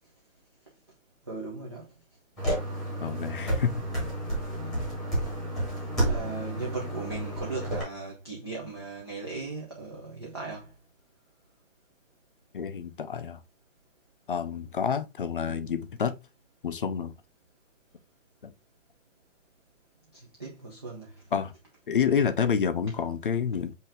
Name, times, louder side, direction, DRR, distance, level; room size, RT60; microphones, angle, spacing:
voice 1, 1.3-1.9 5.9-10.7 20.1-21.2, right 3 dB, 20° right, 0.5 m, -38 dB
sound 1, 2.4-7.8, right 1 dB, ahead, 1.2 m, -31 dB
voice 2, 3.0-3.8 12.5-13.4 14.3-16.2 16.6-17.1 18.4-18.5 21.3-21.5 21.9-23.7, left 7 dB, 45° left, 0.5 m, -28 dB
5.5 x 2.8 x 3.4 m
hypercardioid pair, 175°, 39 cm